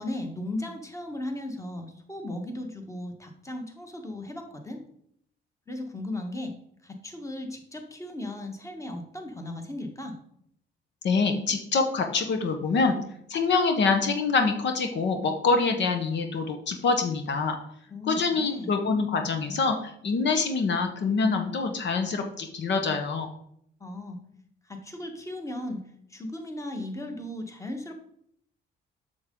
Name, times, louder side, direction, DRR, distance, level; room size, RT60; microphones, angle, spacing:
voice 1, 0.0-4.8 5.7-6.5 6.8-10.1 17.9-18.7 23.8-24.2 24.7-25.8 26.1-27.9, left 1 dB, 15° left, 4 dB, 1.5 m, -36 dB
voice 2, 11.0-13.0 13.3-17.6 18.0-23.3, left 4 dB, 65° left, 5 dB, 1.0 m, -25 dB
7.9 x 6.6 x 3.8 m, 0.70 s
cardioid pair, 90°, 20 cm